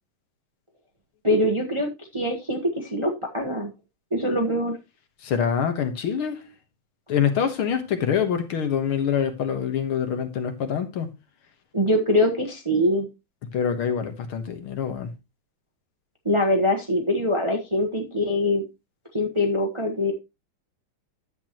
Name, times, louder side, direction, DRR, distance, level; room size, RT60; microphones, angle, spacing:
voice 1, 1.2-3.7 4.1-4.8 11.7-13.1 16.2-18.6 19.1-20.1, left 1 dB, 20° right, 0.9 m, -23 dB
voice 2, 5.2-6.4 7.1-11.1 13.5-15.1, left 7 dB, 75° left, 2.1 m, -25 dB
10.5 x 8.1 x 3.0 m
omnidirectional pair, 2.4 m